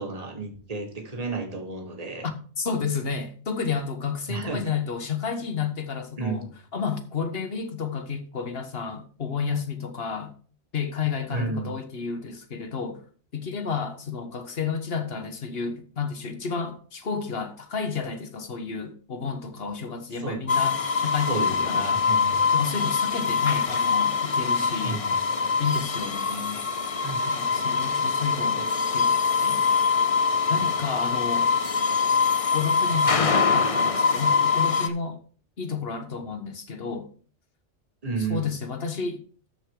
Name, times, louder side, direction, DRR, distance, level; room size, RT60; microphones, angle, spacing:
voice 1, 0.0-2.3 4.3-4.7 6.2-6.4 11.3-11.7 20.2-20.4 21.3-22.4 24.8-25.2 27.0-27.2 28.5-28.6 38.0-38.5, right 3 dB, 30° right, 1.6 m, -32 dB
voice 2, 2.2-6.5 6.7-10.3 10.7-13.0 13.3-22.1 22.5-25.0 25.6-26.6 27.3-28.6 28.9-29.2 29.4-29.6 30.5-31.5 32.5-35.2 35.6-37.1 38.3-39.2, left 6 dB, 55° left, 1.4 m, -31 dB
sound 1, 20.5-34.9, left 5 dB, 35° left, 0.7 m, -24 dB
13.0 x 6.2 x 3.8 m
omnidirectional pair, 1.2 m